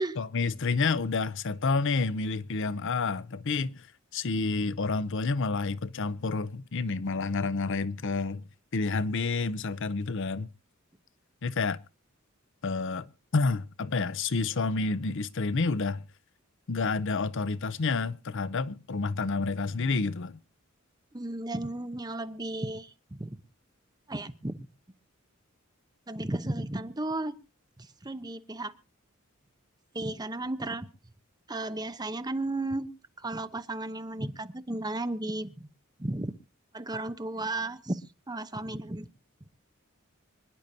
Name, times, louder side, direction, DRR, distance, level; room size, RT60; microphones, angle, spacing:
voice 1, 0.2-3.9 4.1-8.4 8.7-10.5 11.4-11.8 12.6-13.1 13.3-16.0 16.7-20.4, left 4 dB, 60° left, 0.6 m, -29 dB
voice 2, 21.1-23.4 24.1-24.7 26.1-27.4 27.8-28.7 29.9-30.9 31.5-32.9 33.2-35.7 36.0-36.3 36.7-39.1, right 2 dB, 20° right, 0.9 m, -34 dB
25.5 x 10.5 x 2.7 m
head